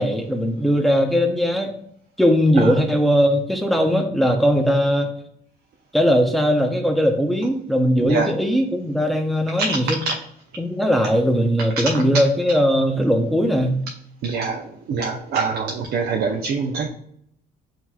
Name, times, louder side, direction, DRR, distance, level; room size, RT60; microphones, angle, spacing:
voice 1, 0.0-1.7 2.2-5.1 5.9-10.0 10.6-13.8, equal, ahead, 3 dB, 0.7 m, -19 dB
voice 2, 9.6-10.1 14.2-16.9, right 4 dB, 65° right, 3 dB, 0.6 m, -24 dB
7.5 x 3.0 x 2.3 m, 0.69 s
cardioid pair, 110°, 17 cm